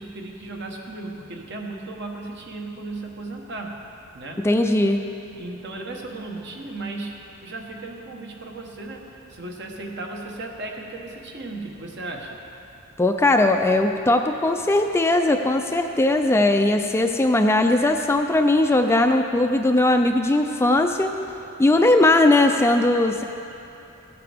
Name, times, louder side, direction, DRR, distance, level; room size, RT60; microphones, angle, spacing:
voice 1, 0.0-3.8 4.1-4.5 5.4-12.4, right 2 dB, 55° right, 1 dB, 1.2 m, -35 dB
voice 2, 4.4-5.0 13.0-21.1 21.6-23.2, left 2 dB, 10° left, 5 dB, 0.3 m, -19 dB
15.5 x 9.3 x 3.5 m, 2.9 s
head